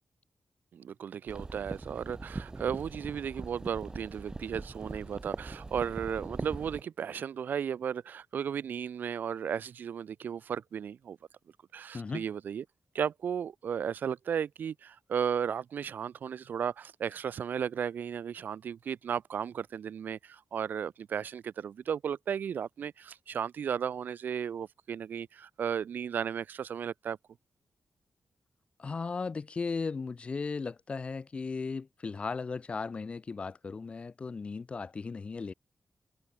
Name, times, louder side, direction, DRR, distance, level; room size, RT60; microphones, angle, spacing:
voice 1, 0.7-11.2 11.7-12.6 12.9-27.2, right 8 dB, 80° right, 2.1 m, -35 dB
sound 1, 1.3-6.8, right 3 dB, 20° right, 3.6 m, -41 dB
voice 2, 11.9-12.2 28.8-35.5, left 4 dB, 40° left, 3.0 m, -36 dB
wide cardioid pair, 135°, 3 cm